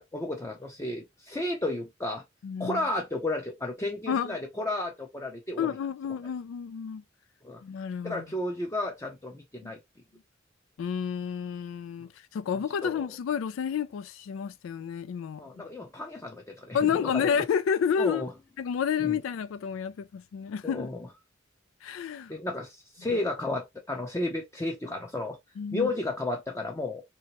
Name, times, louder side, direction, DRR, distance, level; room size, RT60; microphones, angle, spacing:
voice 1, 0.0-2.2 2.6-5.8 7.4-7.6 8.0-9.8 12.8-13.1 15.4-17.3 18.0-18.3 19.0-19.2 20.6-21.1 22.3-25.4 25.7-27.0, left 2 dB, 15° left, 0.6 m, -33 dB
voice 2, 2.4-2.8 4.1-4.4 5.6-7.0 7.6-8.2 9.6-9.7 10.8-15.7 16.7-18.3 18.6-20.9 21.8-22.3 25.6-25.9, left 7 dB, 85° left, 0.3 m, -30 dB
3.3 x 2.9 x 2.9 m
head